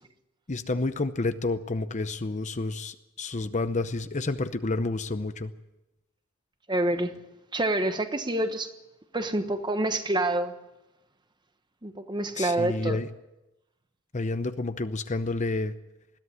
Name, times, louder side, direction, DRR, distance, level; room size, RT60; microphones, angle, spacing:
voice 1, 0.5-5.5 12.4-13.1 14.1-15.7, left 3 dB, 35° left, 0.7 m, -29 dB
voice 2, 6.7-7.2 7.5-8.7 9.1-10.5 11.8-13.0, right 1 dB, 20° right, 1.2 m, -27 dB
21.0 x 14.0 x 9.6 m
head